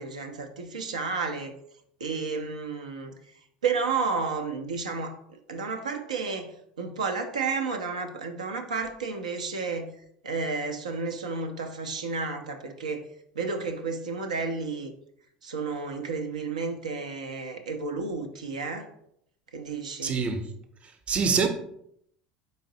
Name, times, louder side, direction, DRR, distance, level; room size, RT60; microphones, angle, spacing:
voice 1, 0.0-1.6 2.0-3.1 3.6-5.2 5.5-6.5 6.8-9.9 10.2-13.1 13.4-14.9 15.4-18.9 19.5-20.2, right 4 dB, 80° right, 0.4 m, -31 dB
voice 2, 20.0-20.4 21.1-21.5, right 5 dB, 30° right, 0.6 m, -24 dB
4.0 x 3.8 x 2.6 m
figure-of-eight pair, 70°, 4 cm